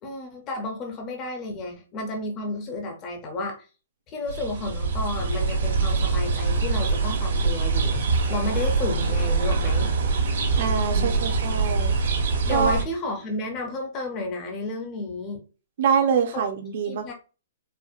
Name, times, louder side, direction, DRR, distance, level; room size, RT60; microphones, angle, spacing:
voice 1, 0.0-3.7 4.1-9.9 10.9-11.3 12.5-15.4 16.3-16.4 16.9-17.1, left 2 dB, 20° left, 2 dB, 0.6 m, -32 dB
sound 1, 4.3-12.8, right 4 dB, 70° right, 1.1 m, -24 dB
voice 2, 10.6-11.9 12.5-12.8 15.8-17.1, right 6 dB, 50° right, 5 dB, 0.6 m, -24 dB
4.3 x 2.1 x 2.4 m, 0.33 s
hypercardioid pair, 170°, 0 cm